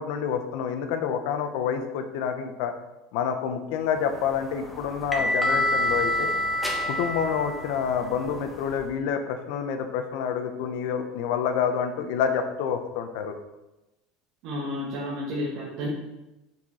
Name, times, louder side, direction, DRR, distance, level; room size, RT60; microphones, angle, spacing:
voice 1, 0.0-2.7 3.1-6.3 6.9-13.3, left 7 dB, 75° left, 7 dB, 0.8 m, -28 dB
sound 1, 4.0-8.8, left 1 dB, ahead, 1.3 m, -28 dB
voice 2, 14.4-15.9, left 1 dB, 65° right, -5 dB, 1.7 m, -31 dB
6.2 x 5.9 x 4.3 m, 0.99 s
supercardioid pair, 115°, 0 cm